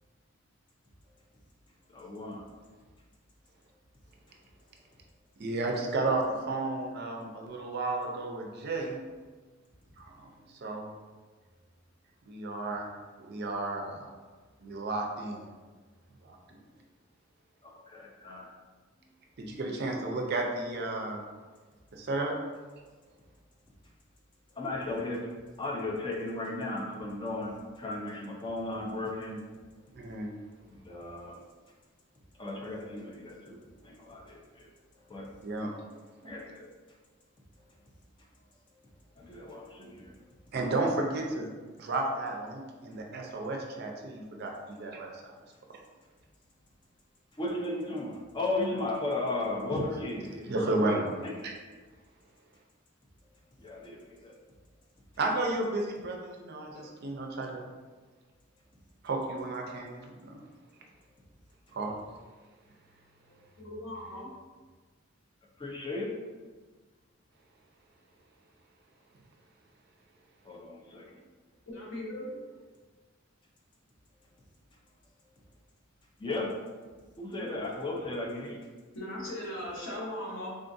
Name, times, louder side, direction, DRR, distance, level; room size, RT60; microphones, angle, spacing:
voice 1, 1.9-2.5 17.6-18.5 19.0-19.1 24.5-25.3 25.6-29.4 29.7-29.8 30.7-31.4 32.3-34.7 34.9-35.3 36.2-36.7 37.5-37.8 38.7-38.8 39.1-40.3 47.3-50.7 51.2-51.3 53.6-54.4 65.6-66.1 70.4-71.3 76.2-76.5 77.2-78.6, left 2 dB, 25° left, -3 dB, 0.5 m, -36 dB
voice 2, 5.4-9.0 10.0-10.9 12.3-12.9 13.2-14.1 14.6-15.5 16.2-16.6 19.4-21.2 21.9-22.4 29.9-30.3 35.4-35.7 36.2-36.3 40.5-41.5 41.8-45.1 49.7-49.8 50.5-51.2 51.4-51.5 55.2-57.7 59.0-60.4 61.7-62.0, right 2 dB, 50° right, 1 dB, 0.5 m, -33 dB
voice 3, 63.3-64.3 71.7-72.3 77.4-77.5 78.9-80.5, left 1 dB, 70° left, -5 dB, 1.0 m, -39 dB
3.7 x 2.4 x 2.6 m, 1.3 s
head